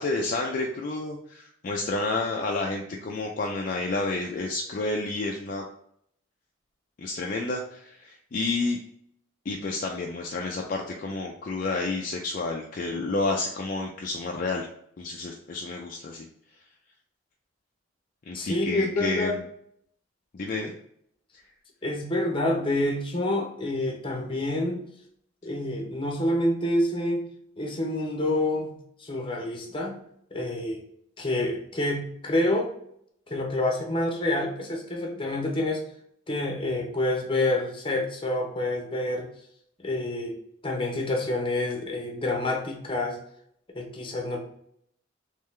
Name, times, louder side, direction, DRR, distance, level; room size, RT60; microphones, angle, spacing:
voice 1, 0.0-5.7 7.0-8.8 9.5-14.7 15.0-16.3 18.3-19.4 20.3-20.7, left 3 dB, 45° left, 0 dB, 0.4 m, -30 dB
voice 2, 18.3-19.4 21.8-24.8 25.4-27.2 27.6-30.0 30.3-30.8 31.2-32.7 33.3-35.8 36.3-39.3 39.8-40.4 40.6-43.2 43.7-44.4, left 1 dB, 25° left, 1 dB, 0.8 m, -27 dB
3.6 x 3.2 x 3.2 m, 0.68 s
head